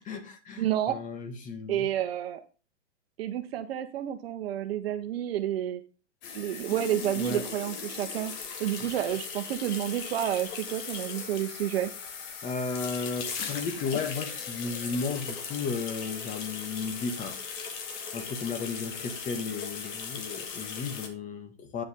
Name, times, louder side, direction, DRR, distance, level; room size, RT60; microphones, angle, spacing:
voice 1, 0.0-1.9 7.2-7.4 8.8-8.9 12.4-17.3 18.1-21.8, left 4 dB, 20° left, 1.5 m, -34 dB
voice 2, 0.6-1.0 1.7-2.4 3.2-5.8 6.3-8.3 8.6-11.9, right 12 dB, 55° right, 1.0 m, -30 dB
sound 1, 6.2-21.1, left 6 dB, 40° left, 2.0 m, -38 dB
9.1 x 7.0 x 3.6 m
hypercardioid pair, 140°, 35 cm